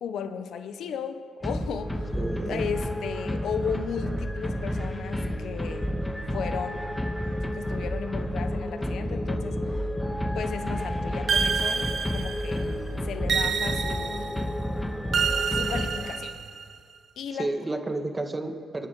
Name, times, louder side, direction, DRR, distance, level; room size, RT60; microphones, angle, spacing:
voice 1, 0.0-2.1 2.5-5.9 6.3-6.9 7.3-9.8 10.3-12.7 13.0-14.4 15.5-16.3 17.2-17.5, left 7 dB, 75° left, 9 dB, 1.1 m, -35 dB
sound 1, 1.4-16.5, equal, 15° left, 2.0 m, -30 dB
voice 2, 2.1-2.6 17.4-18.9, right 2 dB, 25° right, 5 dB, 2.0 m, -31 dB
sound 2, 11.3-12.6 13.3-14.4 15.1-16.6, right 6 dB, 60° right, 0.8 m, -28 dB
28.5 x 10.0 x 5.0 m, 2.1 s
supercardioid pair, 60°, 0 cm